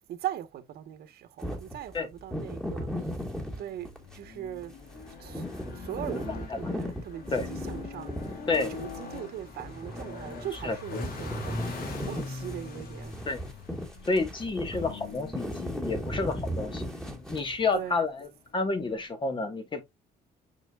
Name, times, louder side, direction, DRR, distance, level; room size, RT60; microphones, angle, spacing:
voice 1, 0.1-3.3 3.6-3.9 4.1-4.7 5.2-5.5 5.7-13.1 14.7-14.8 17.7-18.0, right 11 dB, 70° right, 1.5 m, -40 dB
sound 1, 1.4-4.2 4.6-10.8 11.0-17.7, equal, 5° left, 2.1 m, -37 dB
sound 2, 2.5-19.1, left 3 dB, 60° left, 2.8 m, -42 dB
voice 2, 14.1-16.9 17.3-19.8, left 3 dB, 30° left, 1.8 m, -30 dB
6.7 x 6.1 x 2.5 m
cardioid pair, 110°, 17 cm